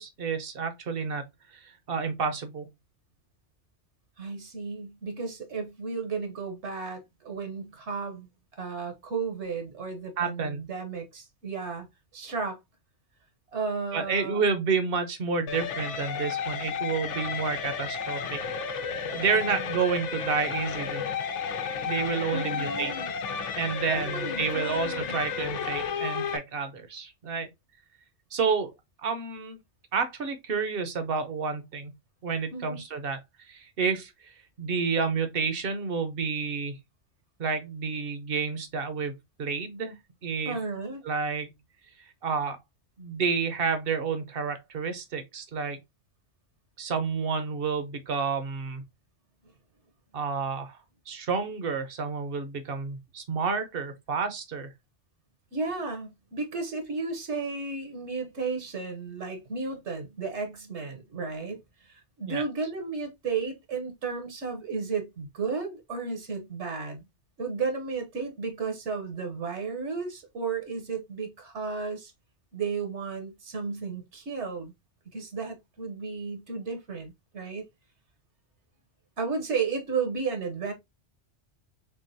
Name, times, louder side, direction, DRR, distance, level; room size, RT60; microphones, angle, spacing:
voice 1, 0.0-2.7 10.2-10.7 13.9-18.4 18.7-18.8 19.1-21.0 21.9-22.9 23.6-27.5 28.3-28.7 29.0-29.6 29.9-31.9 32.2-33.2 33.5-36.8 37.4-39.9 40.2-40.6 41.0-41.6 42.2-42.6 43.0-45.8 46.8-48.8 50.1-50.8 51.1-54.7 62.3-62.4, right 5 dB, 55° right, 0.9 m, -30 dB
voice 2, 4.2-8.3 8.6-11.9 12.1-12.6 13.5-14.4 19.3-19.7 22.3-23.1 23.9-25.2 32.5-32.8 40.5-41.0 55.5-67.0 67.4-72.1 72.5-74.7 75.1-77.7 79.2-80.7, right 4 dB, 75° right, 1.4 m, -33 dB
sound 1, 15.5-26.4, left 6 dB, 85° left, 1.0 m, -32 dB
3.8 x 3.4 x 2.6 m
omnidirectional pair, 1.2 m